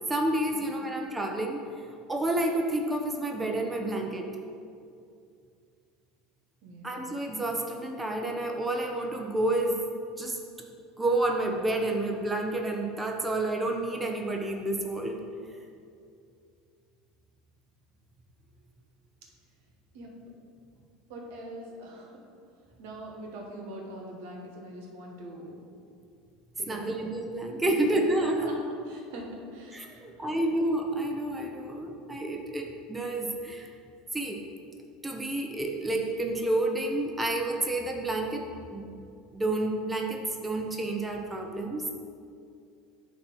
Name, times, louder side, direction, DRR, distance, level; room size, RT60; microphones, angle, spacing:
voice 1, 0.1-1.6 2.1-4.3 6.8-9.8 10.2-10.4 11.0-15.2 26.7-28.5 29.7-33.7 34.1-34.4 35.0-38.8 39.3-41.9, right 1 dB, 15° right, 1 dB, 0.8 m, -29 dB
voice 2, 6.6-7.0 19.9-20.1 21.1-22.2 22.8-25.6 26.6-26.9 27.6-27.7 28.2-30.3, right 1 dB, 70° right, 0 dB, 1.2 m, -43 dB
8.6 x 2.9 x 6.0 m, 2.4 s
hypercardioid pair, 85°, 0 cm